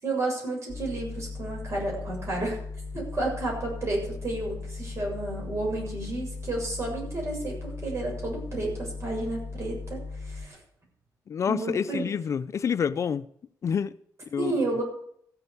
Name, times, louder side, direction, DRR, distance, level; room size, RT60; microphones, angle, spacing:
voice 1, 0.0-2.6 2.9-10.6 11.5-12.0 14.4-14.8, right 2 dB, 45° right, 7.1 m, -31 dB
sound 1, 0.7-10.5, left 3 dB, 30° left, 2.4 m, -38 dB
voice 2, 11.3-13.3 13.6-13.9 14.3-14.8, left 7 dB, 45° left, 0.4 m, -28 dB
15.0 x 8.1 x 7.0 m
cardioid pair, 125°, 7 cm